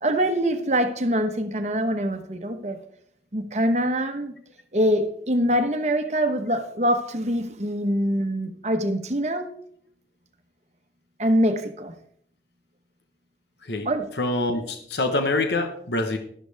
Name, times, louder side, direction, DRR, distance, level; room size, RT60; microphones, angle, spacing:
voice 1, 0.0-2.8 3.3-4.3 4.7-9.5 11.2-11.9 13.8-14.1, equal, 40° right, 7 dB, 1.1 m, -24 dB
voice 2, 14.2-16.2, left 2 dB, 80° left, 6 dB, 1.1 m, -25 dB
12.0 x 11.0 x 3.5 m, 0.64 s
head